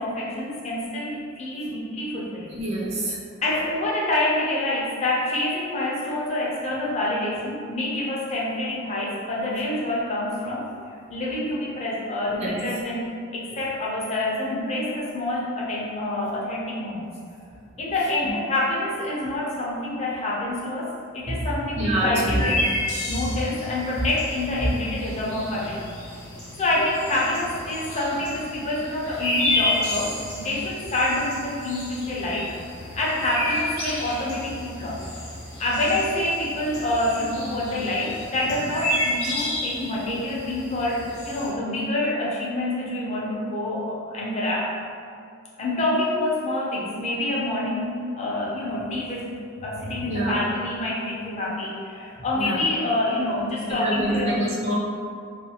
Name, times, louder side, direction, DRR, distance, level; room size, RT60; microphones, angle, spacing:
voice 1, 0.0-2.5 3.4-17.1 17.8-22.6 23.1-25.8 26.6-35.0 35.6-44.7 45.6-49.3 49.6-54.3, left 1 dB, 30° left, -5 dB, 0.5 m, -27 dB
voice 2, 2.5-3.2 12.3-12.6 18.2-18.3 21.3-22.4 50.0-50.4 52.4-52.6 53.7-54.7, right 1 dB, 30° right, -5 dB, 0.4 m, -26 dB
sound 1, 22.4-41.5, left 1 dB, 70° left, 0.8 m, -31 dB
2.4 x 2.2 x 2.7 m, 2.3 s
head